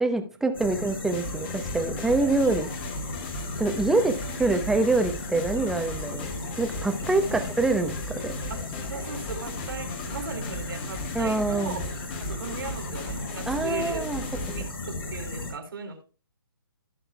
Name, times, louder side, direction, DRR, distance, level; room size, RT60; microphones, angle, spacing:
voice 1, 0.0-2.7 3.6-6.2 6.6-8.3 11.1-11.8 13.5-14.2, right 2 dB, 5° right, 7 dB, 0.8 m, -25 dB
sound 1, 0.5-15.5, left 2 dB, 80° left, 5.2 m, -35 dB
sound 2, 1.1-14.7, left 2 dB, 30° left, 1.5 m, -39 dB
voice 2, 2.3-2.7 4.3-4.6 7.0-7.4 8.5-11.9 12.2-14.1 14.5-16.0, right 4 dB, 75° right, 5 dB, 3.5 m, -38 dB
15.5 x 6.4 x 2.3 m, 0.36 s
hypercardioid pair, 155°, 12 cm